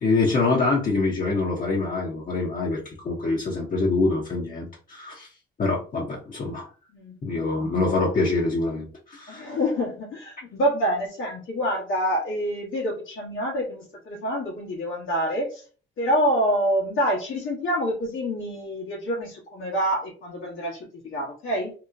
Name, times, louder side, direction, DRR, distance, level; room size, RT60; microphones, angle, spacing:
voice 1, 0.0-5.3 5.6-6.7 7.2-9.4, left 3 dB, 45° left, -3 dB, 0.9 m, -25 dB
voice 2, 6.9-7.4 9.3-15.6 16.0-21.7, equal, 80° left, -5 dB, 1.3 m, -27 dB
3.0 x 2.1 x 3.7 m, 0.37 s
cardioid pair, 90°, 20 cm